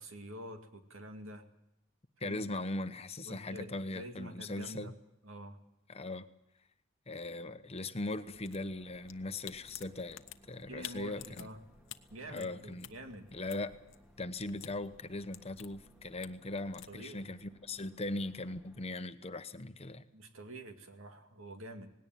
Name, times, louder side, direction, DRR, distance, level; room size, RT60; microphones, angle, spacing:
voice 1, 0.0-1.4 2.2-2.4 3.3-4.9 5.2-5.6 10.7-11.6 12.1-13.3 16.9-17.3 20.1-21.9, right 1 dB, 80° right, 5 dB, 2.3 m, -47 dB
voice 2, 2.2-4.9 5.9-6.3 7.1-10.2 10.5-11.5 12.3-12.9 13.3-13.8 14.2-20.0, left 2 dB, 30° left, 10 dB, 0.9 m, -39 dB
sound 1, 8.2-17.0, left 11 dB, 70° left, 1.0 m, -53 dB
sound 2, 8.3-19.0, right 1 dB, 5° right, 1.8 m, -63 dB
19.0 x 17.5 x 9.3 m, 0.84 s
head